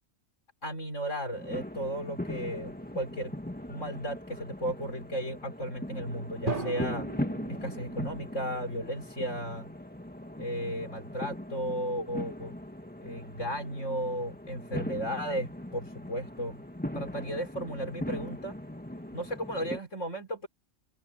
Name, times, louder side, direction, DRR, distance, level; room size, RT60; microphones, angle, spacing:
voice 1, 0.6-3.3 3.7-7.1 7.5-9.7 10.4-12.5 13.0-16.6 16.9-18.5 19.1-20.5, equal, 85° left, 6.4 m, -35 dB
sound 1, 1.3-19.8, left 1 dB, 5° left, 1.8 m, -39 dB
Drum, 6.5-8.4, right 2 dB, 45° right, 3.0 m, -36 dB
open air
omnidirectional pair, 1.3 m